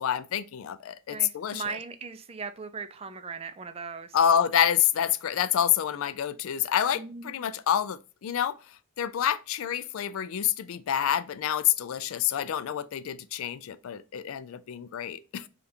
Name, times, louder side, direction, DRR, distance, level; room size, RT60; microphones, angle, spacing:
voice 1, 0.0-1.7 4.1-8.6 9.0-15.5, left 9 dB, 70° left, 0.3 m, -27 dB
voice 2, 1.1-4.2 6.9-7.4, right 5 dB, 30° right, 0.4 m, -38 dB
5.1 x 2.4 x 2.7 m
head